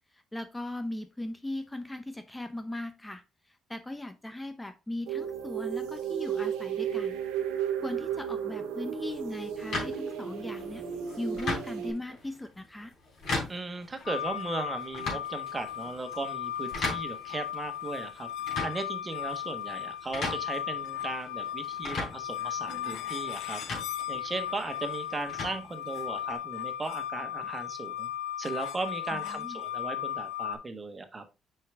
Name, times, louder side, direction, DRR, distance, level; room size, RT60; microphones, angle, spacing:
voice 1, 0.1-3.2 3.5-7.2 7.8-10.8 11.2-12.9 29.1-29.6, left 1 dB, 10° left, 0.7 m, -38 dB
sound 1, 5.1-11.9, right 8 dB, 85° right, 1.0 m, -33 dB
sound 2, 9.7-26.4, left 3 dB, 60° left, 3.6 m, -39 dB
voice 2, 13.5-18.3 18.6-23.6 24.1-28.1 28.4-31.2, right 3 dB, 30° right, 1.2 m, -37 dB
sound 3, 14.1-30.6, left 11 dB, 80° left, 0.6 m, -36 dB
6.3 x 4.8 x 3.5 m
supercardioid pair, 70°, 0 cm